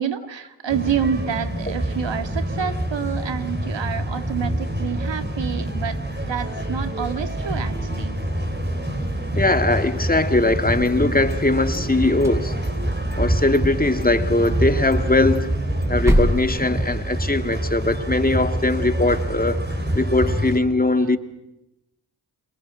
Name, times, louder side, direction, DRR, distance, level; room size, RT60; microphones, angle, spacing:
voice 1, 0.0-6.0 6.3-8.2, right 8 dB, 65° right, 2.2 m, -28 dB
sound 1, 0.7-20.6, right 1 dB, 20° right, 5.9 m, -26 dB
voice 2, 9.4-12.5 13.2-15.5 15.9-19.6 19.9-21.2, left 2 dB, 20° left, 2.3 m, -20 dB
sound 2, 10.6-11.8 12.1-13.3 13.5-13.6 14.0-14.2 14.4-14.5 14.9-17.5, equal, 5° right, 7.0 m, -26 dB
29.0 x 22.0 x 7.6 m
supercardioid pair, 45°, 48 cm